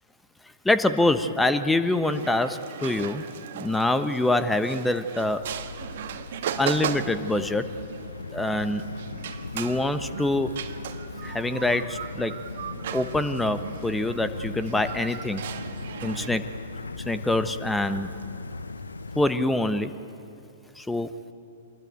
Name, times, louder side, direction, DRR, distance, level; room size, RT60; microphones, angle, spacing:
voice 1, 0.6-3.2 3.6-5.4 6.6-7.7 8.3-8.9 9.5-10.5 11.2-12.3 12.9-15.4 16.0-16.5 17.0-18.1 19.1-19.9 20.8-21.1, left 2 dB, 5° left, 11 dB, 1.1 m, -25 dB
sound 1, 2.0-16.3, right 9 dB, 55° right, 1.5 m, -37 dB
sound 2, 5.2-19.3, left 3 dB, 80° left, 0.9 m, -38 dB
25.5 x 21.5 x 9.0 m, 2.7 s
figure-of-eight pair, 105°, 0 cm